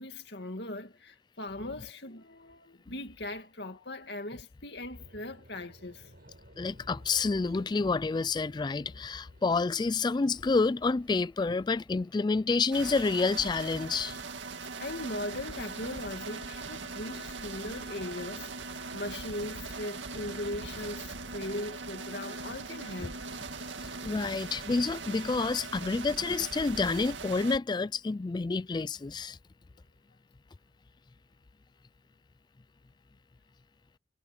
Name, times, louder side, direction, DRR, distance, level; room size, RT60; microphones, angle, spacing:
voice 1, 0.0-6.1 13.5-13.6 14.8-23.2, left 1 dB, 60° left, 2.3 m, -39 dB
sound 1, 5.0-11.2, right 1 dB, 55° right, 7.6 m, -57 dB
voice 2, 6.6-14.2 24.0-29.4, left 4 dB, 25° left, 0.3 m, -29 dB
sound 2, 9.7-25.1, equal, 10° left, 5.4 m, -63 dB
sound 3, 12.7-27.6, right 4 dB, 80° right, 2.1 m, -40 dB
head